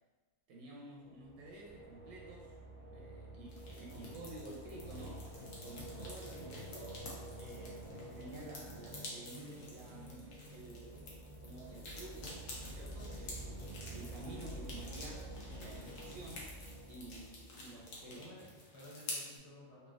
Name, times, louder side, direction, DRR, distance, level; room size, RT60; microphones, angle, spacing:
voice 1, 0.5-2.6 2.8-7.0 7.3-18.3, right 2 dB, 90° right, -2 dB, 1.0 m, -52 dB
sound 1, 1.1-18.1, right 1 dB, 35° right, 0.7 m, -49 dB
sound 2, 3.5-19.4, left 2 dB, 75° left, 1.1 m, -50 dB
voice 2, 6.3-6.7 18.1-19.9, left 1 dB, 55° left, -8 dB, 1.3 m, -55 dB
3.2 x 2.7 x 2.4 m, 1.2 s
omnidirectional pair, 1.4 m